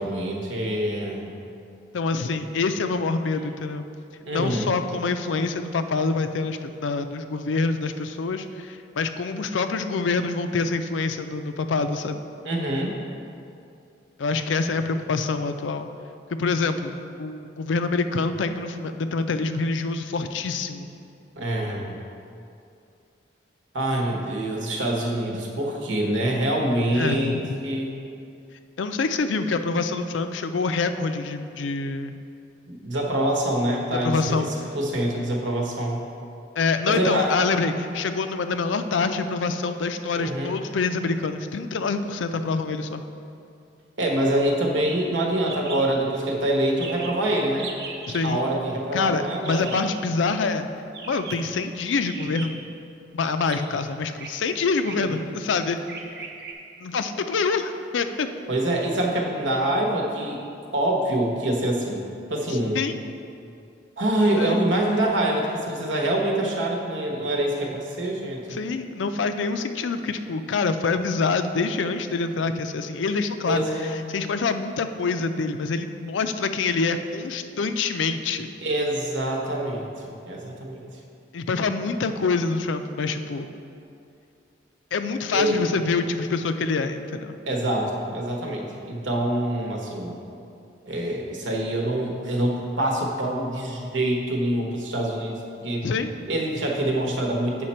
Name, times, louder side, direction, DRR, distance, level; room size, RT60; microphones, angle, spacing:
voice 1, 0.0-1.3 4.3-4.7 12.4-12.9 21.3-21.9 23.7-27.4 27.6-27.9 32.7-34.5 34.7-36.0 36.9-37.4 40.1-40.5 44.0-47.7 48.2-49.7 54.9-55.3 58.5-60.4 60.7-62.0 62.3-62.8 64.0-68.6 73.5-74.1 78.6-80.8 85.3-85.6 87.5-90.2 90.9-95.4 95.6-95.9 96.3-97.7, right 1 dB, 85° right, 0 dB, 1.2 m, -25 dB
voice 2, 1.9-3.8 4.3-12.2 14.2-15.9 16.4-16.9 17.2-20.9 26.9-27.5 28.8-32.2 34.0-34.5 36.6-43.1 48.1-48.4 48.9-50.7 51.1-52.7 53.1-55.8 56.8-58.3 62.5-63.0 64.4-64.6 68.5-73.6 74.1-78.5 81.3-83.5 84.9-87.4 95.8-96.1, left 4 dB, 85° left, 9 dB, 0.4 m, -26 dB
sound 1, 45.5-45.8 46.1-46.2 46.4-46.5 46.8-47.2 47.6-48.3 49.4-49.9 50.9-51.5 52.0-52.7 53.4-53.6 54.1-54.3 54.8-55.1 55.9-56.5, right 4 dB, 55° right, 0.7 m, -38 dB
7.9 x 5.8 x 4.3 m, 2.5 s
head